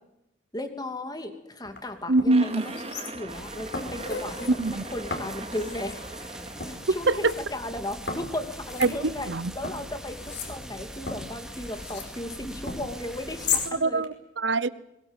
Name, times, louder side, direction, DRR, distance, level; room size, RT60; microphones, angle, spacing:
voice 1, 0.5-6.2 6.7-14.0, left 1 dB, 20° left, 2.7 m, -36 dB
sound 1, 1.6-1.8 2.2-3.4 3.7-4.5 5.1-6.0 6.6-7.4 8.1-9.4 9.6-12.1 12.7-13.7 14.0-14.1, left 5 dB, 60° left, 5.2 m, -35 dB
voice 2, 2.1-2.6 4.6-4.8 7.1-7.3 8.8-9.5 13.7-14.7, right 3 dB, 70° right, 0.9 m, -24 dB
sound 2, 2.3-7.3, right 3 dB, 30° right, 2.4 m, -41 dB
sound 3, 3.3-13.7, right 1 dB, 5° right, 2.6 m, -42 dB
22.0 x 21.5 x 9.1 m
head